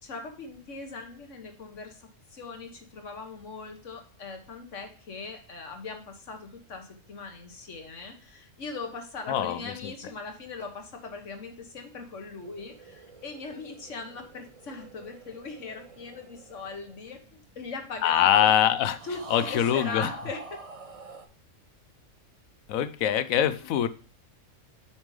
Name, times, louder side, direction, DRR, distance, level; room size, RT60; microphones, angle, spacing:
voice 1, 0.0-18.5 19.0-20.6, left 4 dB, 65° left, 1.6 m, -40 dB
voice 2, 9.3-9.9 18.0-19.0 19.3-20.1 22.7-23.9, left 10 dB, 90° left, 1.0 m, -23 dB
sound 1, 12.3-17.8 18.9-21.3, right 3 dB, 35° right, 0.6 m, -46 dB
7.2 x 5.2 x 3.2 m
omnidirectional pair, 1.4 m